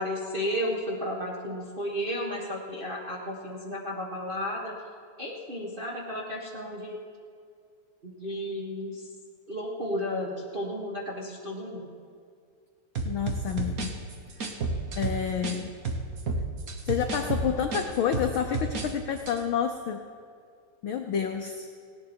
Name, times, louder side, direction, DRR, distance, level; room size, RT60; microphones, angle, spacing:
voice 1, 0.0-4.8 5.2-7.0 8.0-9.1 9.5-11.9, left 1 dB, 30° right, -3 dB, 1.0 m, -33 dB
sound 1, 12.9-15.6 15.8-18.9 19.2-19.4, right 3 dB, 55° right, 0.9 m, -31 dB
voice 2, 13.0-14.0 15.0-15.7 16.8-20.0 20.8-21.7, left 8 dB, 90° left, 5 dB, 1.1 m, -29 dB
18.0 x 17.5 x 4.5 m, 2.2 s
omnidirectional pair, 3.3 m